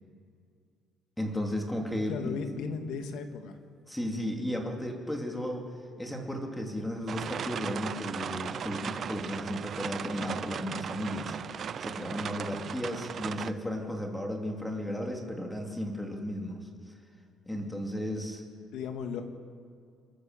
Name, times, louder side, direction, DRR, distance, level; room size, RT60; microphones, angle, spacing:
voice 1, 1.2-2.4 3.9-5.7 6.0-16.6 17.5-18.4, equal, 5° left, 1 dB, 2.7 m, -34 dB
voice 2, 2.1-3.6 18.7-19.3, left 5 dB, 70° left, 5 dB, 2.2 m, -36 dB
sound 1, 7.1-13.5, right 7 dB, 40° right, 0.6 m, -37 dB
30.0 x 12.0 x 7.5 m, 2.3 s
cardioid pair, 160°, 0 cm